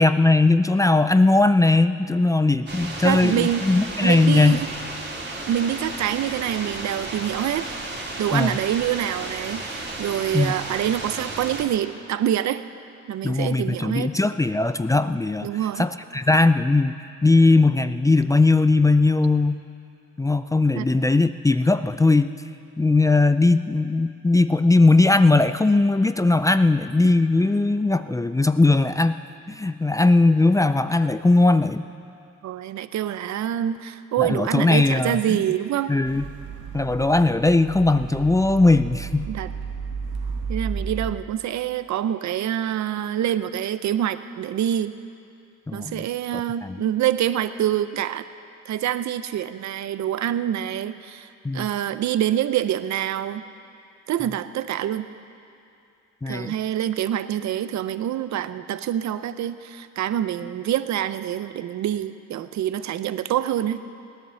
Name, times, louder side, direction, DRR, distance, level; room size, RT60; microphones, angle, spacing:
voice 1, 0.0-4.6 8.3-8.6 10.3-10.5 13.2-15.5 15.8-19.6 20.2-22.3 22.8-29.2 29.5-31.8 34.2-35.4 35.9-36.3 36.7-39.3 45.7-46.0 46.6-46.8 51.4-51.7 56.2-56.5, left 2 dB, 10° left, 11 dB, 0.4 m, -19 dB
sound 1, 2.7-11.6, right 2 dB, 35° right, 2.8 m, -33 dB
voice 2, 3.0-3.7 4.0-4.7 5.5-7.7 8.2-12.6 13.1-14.1 15.4-15.9 20.8-20.9 32.4-35.9 39.3-39.5 40.5-44.9 45.7-48.3 48.7-53.4 54.1-55.0 56.3-63.8, right 11 dB, 65° right, 12 dB, 0.7 m, -26 dB
sound 2, 36.0-41.1, right 5 dB, 90° right, 1.3 m, -33 dB
17.5 x 10.5 x 7.0 m, 2.5 s
cardioid pair, 90°, 30 cm